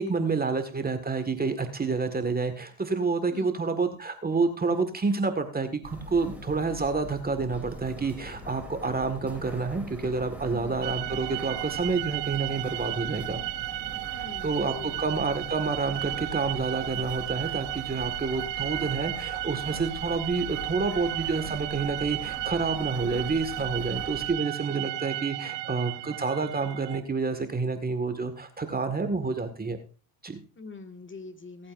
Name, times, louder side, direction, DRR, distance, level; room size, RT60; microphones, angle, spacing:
voice 1, 0.0-13.4 14.4-29.8 30.2-30.4, right 4 dB, 20° right, 8 dB, 1.7 m, -29 dB
voice 2, 3.3-3.6 10.4-10.8 14.1-15.1 30.6-31.7, left 4 dB, 25° left, 6 dB, 1.8 m, -44 dB
sound 1, 5.8-24.3, left 1 dB, 5° right, 3.1 m, -43 dB
sound 2, 10.8-27.0, right 18 dB, 60° right, 1.1 m, -34 dB
24.0 x 8.7 x 2.6 m, 0.36 s
supercardioid pair, 85°, 48 cm